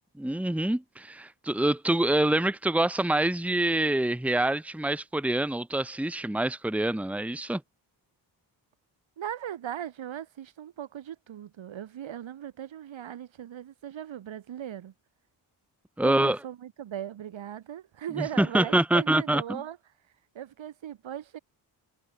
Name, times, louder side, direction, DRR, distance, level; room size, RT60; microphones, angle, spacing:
voice 1, 0.2-7.6 16.0-16.4 18.2-19.6, right 1 dB, 5° right, 1.4 m, -26 dB
voice 2, 9.2-14.9 16.0-19.8 20.3-21.4, right 10 dB, 80° right, 5.9 m, -38 dB
cardioid pair, 60°, 46 cm